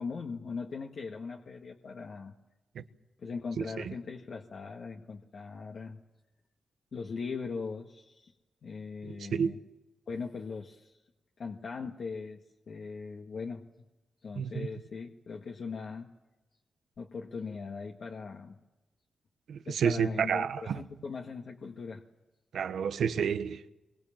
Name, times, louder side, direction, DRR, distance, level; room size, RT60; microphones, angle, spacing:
voice 1, 0.0-2.3 3.2-6.0 6.9-8.3 8.6-9.6 10.1-11.0 11.4-13.7 14.2-16.1 17.0-18.6 19.7-22.0, left 5 dB, 60° left, 1.7 m, -40 dB
voice 2, 3.6-3.9 9.0-9.5 14.4-14.7 19.5-20.8 22.5-23.7, right 7 dB, 85° right, 1.1 m, -30 dB
24.5 x 23.5 x 7.4 m
cardioid pair, 100°, 0 cm